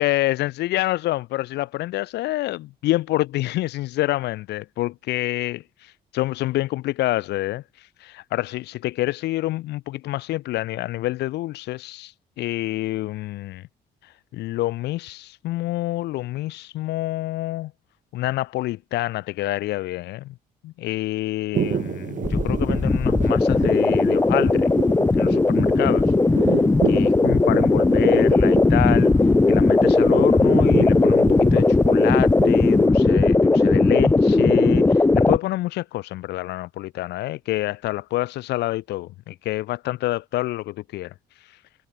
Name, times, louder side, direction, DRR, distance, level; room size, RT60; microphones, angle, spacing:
voice 1, 0.0-13.6 14.0-17.7 18.1-20.3 20.6-24.7 25.1-26.1 26.9-29.1 29.5-41.6, left 17 dB, 90° left, 2.7 m, -27 dB
sound 1, 21.5-32.9, right 8 dB, 50° right, 2.4 m, -30 dB
sound 2, 22.2-35.4, left 3 dB, 15° left, 1.1 m, -18 dB
cardioid pair, 105°, 17 cm